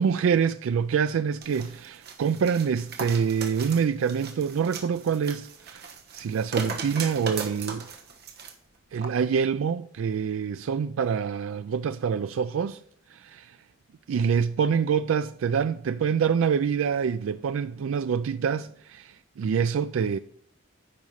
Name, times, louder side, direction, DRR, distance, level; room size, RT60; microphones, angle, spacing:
voice 1, 0.0-5.9 6.1-7.9 8.9-12.8 13.1-13.5 14.1-20.2, right 6 dB, 80° right, 0.3 m, -26 dB
sound 1, 1.4-8.5 9.0-9.1, right 4 dB, 50° right, 1.2 m, -38 dB
9.4 x 5.3 x 5.7 m
head